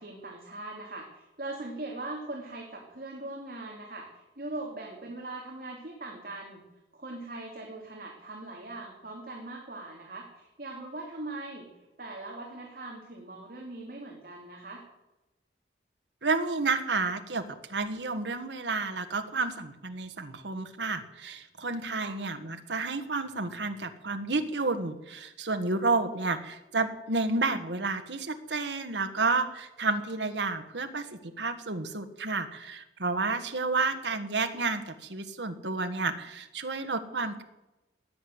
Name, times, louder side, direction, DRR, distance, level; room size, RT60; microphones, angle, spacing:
voice 1, 0.0-6.6 6.9-11.7 12.0-14.8 22.0-22.2, right 2 dB, 55° right, -1 dB, 2.8 m, -40 dB
voice 2, 16.2-37.4, right 3 dB, 80° right, 7 dB, 1.6 m, -31 dB
16.5 x 9.9 x 7.9 m, 0.99 s
head